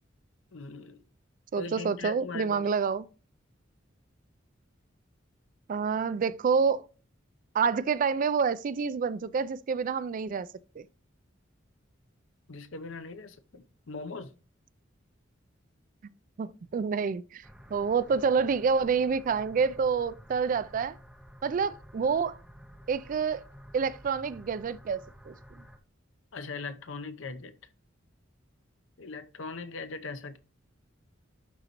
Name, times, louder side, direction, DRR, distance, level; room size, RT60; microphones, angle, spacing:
voice 1, 0.5-1.0 1.5-2.7 12.5-14.3 26.3-27.5 29.0-30.4, left 3 dB, 75° left, 0.7 m, -40 dB
voice 2, 1.5-3.1 5.7-6.9 7.5-10.5 10.8-10.9 16.4-17.4 17.7-21.0 21.4-22.4 22.9-23.4 23.7-25.3, right 5 dB, 45° right, 0.3 m, -28 dB
sound 1, 17.4-25.8, equal, 5° right, 0.7 m, -51 dB
11.5 x 3.9 x 2.9 m
head